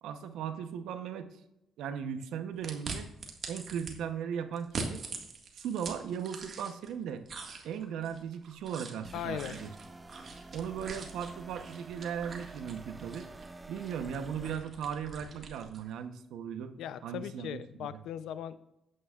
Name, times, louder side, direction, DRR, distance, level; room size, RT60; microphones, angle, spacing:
voice 1, 0.0-1.4 1.8-3.1 3.5-5.0 5.5-7.2 7.6-9.7 10.5-13.3 13.7-16.7 17.0-18.0, right 8 dB, 85° right, 9 dB, 0.8 m, -37 dB
sound 1, 2.6-3.9 4.6-6.9 7.2-15.9, right 4 dB, 50° right, 1.7 m, -44 dB
sound 2, 9.0-14.5, right 2 dB, 20° right, 0.5 m, -49 dB
voice 2, 9.1-9.6 16.8-18.6, left 10 dB, 80° left, 14 dB, 0.5 m, -38 dB
11.0 x 8.8 x 2.4 m, 0.86 s
cardioid pair, 90°, 0 cm